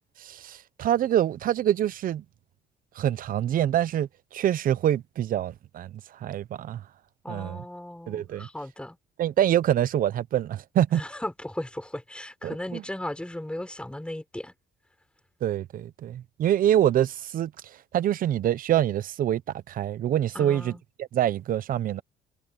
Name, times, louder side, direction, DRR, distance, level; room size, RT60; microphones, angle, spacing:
voice 1, 0.2-2.2 2.9-6.8 7.3-7.6 8.1-8.5 9.2-11.0 12.4-12.8 15.4-19.4 19.7-22.0, right 11 dB, 55° right, 0.9 m, -26 dB
voice 2, 7.2-9.0 11.0-14.5 20.4-20.8, left 1 dB, 5° left, 6.9 m, -36 dB
cardioid pair, 110°, 17 cm